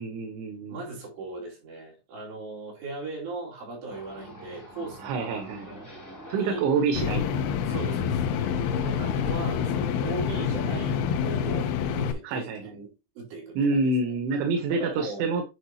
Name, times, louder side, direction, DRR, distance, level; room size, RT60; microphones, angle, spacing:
voice 1, 0.0-0.8 5.0-5.8 6.3-7.2 12.2-12.8 13.6-15.4, right 4 dB, 85° right, 3.4 m, -27 dB
voice 2, 0.7-5.5 6.4-6.7 7.7-8.2 8.8-11.0 11.2-12.9 13.2-13.9 14.7-15.3, right 2 dB, 65° right, 5.0 m, -37 dB
sound 1, 3.9-11.1, right 2 dB, 5° left, 2.1 m, -44 dB
sound 2, 6.9-12.1, left 7 dB, 80° left, 2.4 m, -27 dB
10.0 x 4.7 x 2.9 m
omnidirectional pair, 5.3 m